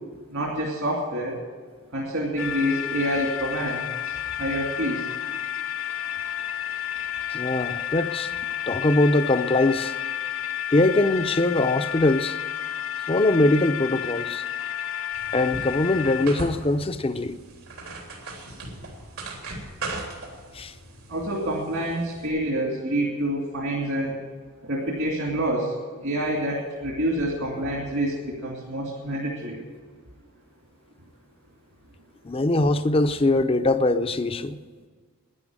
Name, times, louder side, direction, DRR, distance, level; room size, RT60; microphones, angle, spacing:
voice 1, 0.3-1.4 1.9-5.1 21.1-24.2 24.6-25.7 26.0-29.6, right 1 dB, 65° right, 2.6 m, -27 dB
sound 1, 2.4-16.3, left 10 dB, 65° left, 1.1 m, -31 dB
voice 2, 7.3-8.3 8.7-10.0 10.7-12.4 13.1-14.4 15.3-17.3 20.5-20.7 32.2-34.6, left 2 dB, 25° left, 0.6 m, -22 dB
sound 2, 15.1-22.3, right 2 dB, 80° right, 3.5 m, -38 dB
12.0 x 10.0 x 8.9 m
head